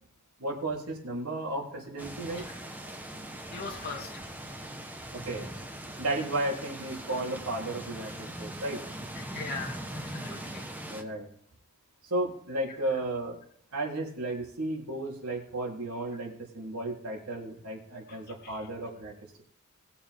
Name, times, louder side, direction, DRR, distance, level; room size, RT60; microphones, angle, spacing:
voice 1, 0.4-2.5 5.1-5.5 6.0-8.8 10.9-11.3 12.0-13.4 13.7-19.4, right 2 dB, 80° right, -1 dB, 3.5 m, -34 dB
sound 1, 2.0-11.0, right 1 dB, 10° right, 1.2 m, -41 dB
voice 2, 3.5-4.2 9.1-10.6 12.7-12.8 16.1-16.2 18.1-18.7, left 3 dB, 45° left, -2 dB, 2.6 m, -41 dB
20.5 x 7.1 x 3.6 m, 0.64 s
head